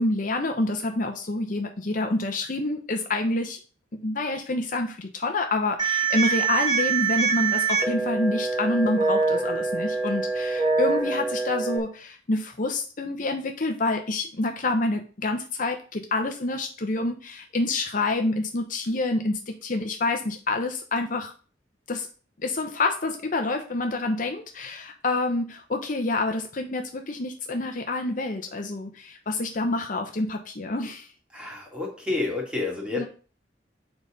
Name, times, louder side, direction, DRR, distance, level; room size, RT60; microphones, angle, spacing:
voice 1, 0.0-3.6 4.0-21.3 21.9-22.1 22.4-31.1 32.9-33.0, left 2 dB, 45° left, 5 dB, 0.8 m, -27 dB
sound 1, 5.8-11.8, right 4 dB, 25° right, 1.3 m, -25 dB
voice 2, 31.3-33.1, left 3 dB, 5° right, -1 dB, 2.2 m, -29 dB
7.2 x 4.1 x 5.0 m, 0.38 s
head